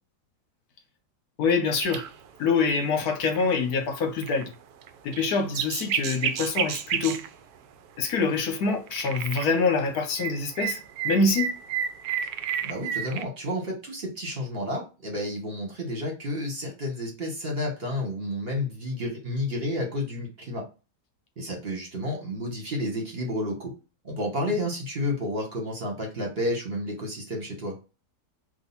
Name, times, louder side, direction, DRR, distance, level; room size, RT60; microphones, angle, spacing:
voice 1, 1.4-2.0 2.4-4.5 5.0-7.3 8.0-10.8 11.0-11.5, left 4 dB, 70° left, 1.3 m, -25 dB
sound 1, 1.8-2.3 2.7-2.8 3.3-3.5 4.2-4.5 4.8-7.3 8.9-9.5 9.8-13.2, right 8 dB, 75° right, 1.1 m, -31 dB
voice 2, 12.6-20.7 21.4-23.7 24.0-27.8, left 1 dB, 40° right, 1.5 m, -31 dB
3.8 x 2.9 x 4.0 m
omnidirectional pair, 1.7 m